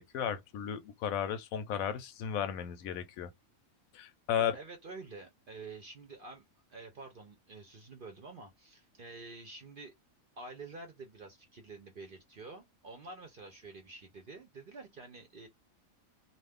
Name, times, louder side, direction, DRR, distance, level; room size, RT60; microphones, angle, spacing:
voice 1, 0.0-3.3 3.9-4.6, left 9 dB, 75° left, 1.0 m, -34 dB
voice 2, 4.4-9.9 10.4-15.5, right 3 dB, 50° right, 0.7 m, -48 dB
2.5 x 2.4 x 3.4 m
omnidirectional pair, 1.5 m